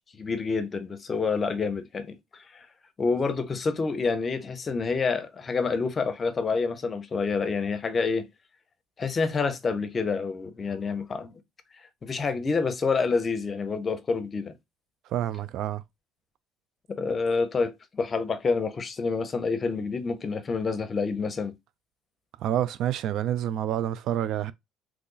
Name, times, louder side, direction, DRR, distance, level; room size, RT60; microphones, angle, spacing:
voice 1, 0.1-2.7 3.0-8.3 9.0-11.3 12.0-14.5 16.9-21.5, left 4 dB, 35° left, 0.7 m, -28 dB
voice 2, 15.1-15.8 22.4-24.5, right 11 dB, 70° right, 0.3 m, -28 dB
3.1 x 2.5 x 3.8 m
supercardioid pair, 85°, 0 cm